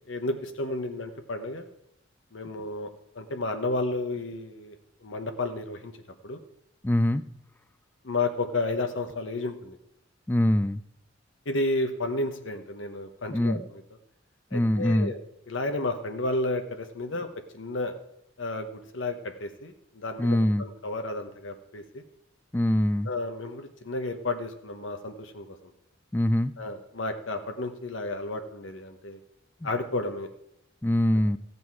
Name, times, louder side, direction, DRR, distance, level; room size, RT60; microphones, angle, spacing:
voice 1, 0.0-1.6 2.3-5.9 6.2-6.4 8.0-9.8 11.5-13.6 14.5-15.2 15.5-17.3 17.5-18.0 18.4-22.0 23.1-25.6 26.6-29.2 29.6-30.3, left 2 dB, 80° left, 6 dB, 1.0 m, -32 dB
voice 2, 6.8-7.2 10.3-10.8 13.3-13.7 14.5-15.1 20.2-20.6 22.5-23.1 26.1-26.5 30.8-31.4, left 1 dB, 10° left, 14 dB, 0.3 m, -23 dB
14.5 x 8.2 x 4.7 m, 0.78 s
head